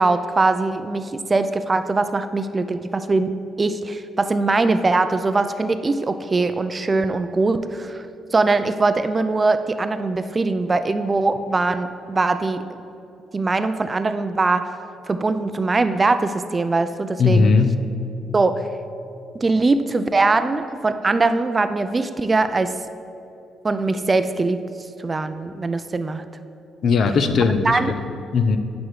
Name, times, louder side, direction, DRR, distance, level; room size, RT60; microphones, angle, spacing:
voice 1, 0.0-3.3 3.6-8.1 8.3-12.6 13.3-14.7 15.1-17.5 18.3-18.6 19.3-22.7 23.6-24.6 25.0-26.2 27.6-27.9, right 3 dB, 30° right, 10 dB, 0.3 m, -21 dB
voice 2, 17.2-17.7 26.8-28.0 28.3-28.6, left 4 dB, 60° left, 8 dB, 0.5 m, -18 dB
9.8 x 6.0 x 3.2 m, 2.7 s
cardioid pair, 90°, 0 cm